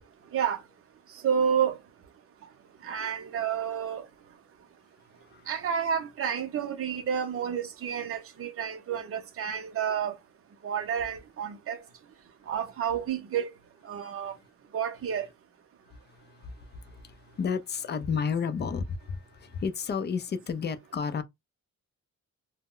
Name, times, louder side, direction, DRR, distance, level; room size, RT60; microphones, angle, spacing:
voice 1, 1.2-1.8 2.8-4.0 5.5-10.1 10.6-11.8 12.5-13.5 13.9-14.3 14.7-15.3, right 8 dB, 40° right, 0.6 m, -30 dB
voice 2, 16.4-21.2, left 6 dB, 30° left, 0.4 m, -32 dB
2.1 x 2.0 x 3.6 m
wide cardioid pair, 130°, 34 cm